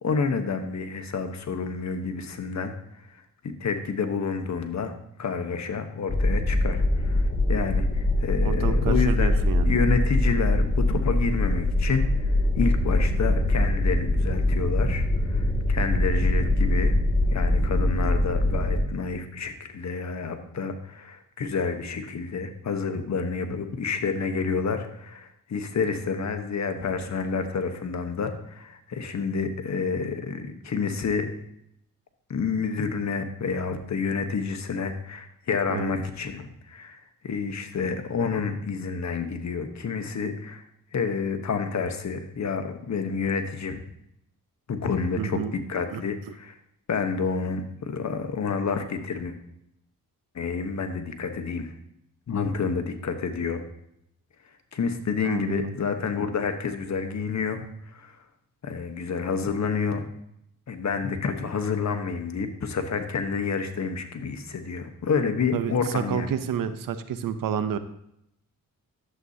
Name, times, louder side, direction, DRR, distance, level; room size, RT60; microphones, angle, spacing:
voice 1, 0.0-2.7 3.1-4.9 5.2-17.0 17.3-31.3 32.3-40.6 40.9-43.8 44.7-46.5 46.9-49.4 50.3-51.7 52.3-53.6 54.7-58.2 58.6-60.0 60.7-66.3, left 5 dB, 55° left, 7 dB, 1.2 m, -29 dB
sound 1, 6.1-18.8, left 1 dB, 20° left, 2.5 m, -23 dB
voice 2, 8.4-9.7 35.7-35.9 45.2-45.5 45.9-46.0 55.2-55.7 65.5-67.8, right 8 dB, 75° right, 11 dB, 0.8 m, -29 dB
11.5 x 7.8 x 2.8 m, 0.75 s
cardioid pair, 65°, 34 cm